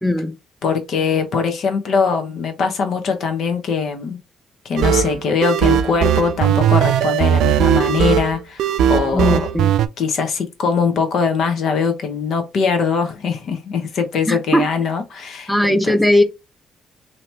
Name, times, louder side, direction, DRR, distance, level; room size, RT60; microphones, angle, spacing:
voice 1, 0.0-0.3 9.1-9.7 14.3-14.6 15.5-16.2, left 1 dB, ahead, 0.7 m, -17 dB
voice 2, 0.6-4.2 4.6-9.4 10.0-16.0, left 5 dB, 70° left, 0.9 m, -21 dB
sound 1, 4.8-9.9, right 9 dB, 85° right, 0.3 m, -17 dB
2.8 x 2.8 x 3.3 m
cardioid pair, 90°, 0 cm